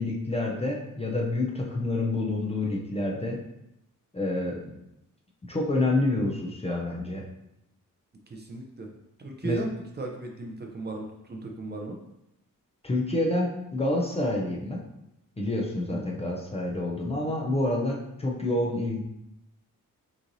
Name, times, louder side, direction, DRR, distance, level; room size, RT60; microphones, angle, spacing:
voice 1, 0.0-3.4 4.1-4.8 5.5-7.3 9.4-9.6 12.8-14.8 15.4-19.0, left 2 dB, 20° left, -1 dB, 0.5 m, -28 dB
voice 2, 8.3-8.9 9.2-9.7 10.0-12.0 15.9-16.1, right 3 dB, 30° right, 1 dB, 0.5 m, -36 dB
6.4 x 3.1 x 2.7 m, 0.85 s
wide cardioid pair, 170°, 33 cm